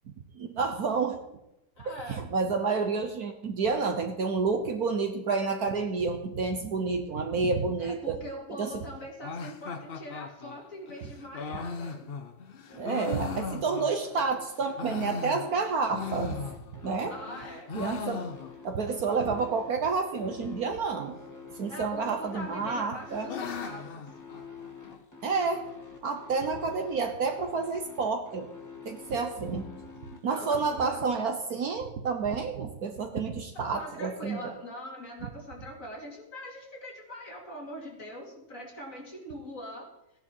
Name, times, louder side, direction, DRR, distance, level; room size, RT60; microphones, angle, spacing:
voice 1, 0.3-1.2 2.1-8.2 8.6-8.8 12.7-16.4 16.8-17.1 17.7-18.2 18.6-21.2 21.6-23.3 25.2-25.6 26.0-28.5 28.8-29.7 30.2-34.4, right 4 dB, 55° right, 6 dB, 1.3 m, -29 dB
voice 2, 1.8-2.2 7.8-12.1 17.1-17.7 21.7-24.1 29.1-29.2 30.3-31.3 33.5-39.9, equal, 45° left, 0 dB, 3.0 m, -42 dB
sound 1, 9.2-14.2 14.6-17.0 17.3-18.8 19.1-19.2 19.4-19.5 20.1-20.6 21.6-22.2 22.6-25.0, left 5 dB, 60° left, 0.6 m, -39 dB
sound 2, 12.7-31.0, left 4 dB, 10° left, 2.0 m, -47 dB
15.5 x 10.5 x 4.5 m, 0.85 s
omnidirectional pair, 2.0 m